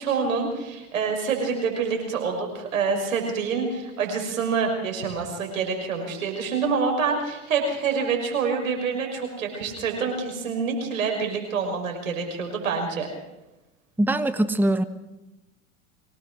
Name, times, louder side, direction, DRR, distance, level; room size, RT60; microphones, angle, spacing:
voice 1, 0.0-13.1, right 5 dB, 90° right, 3 dB, 6.0 m, -26 dB
voice 2, 14.0-14.8, right 1 dB, 5° right, 12 dB, 1.1 m, -22 dB
24.0 x 19.0 x 6.3 m, 0.96 s
hypercardioid pair, 95°, 39 cm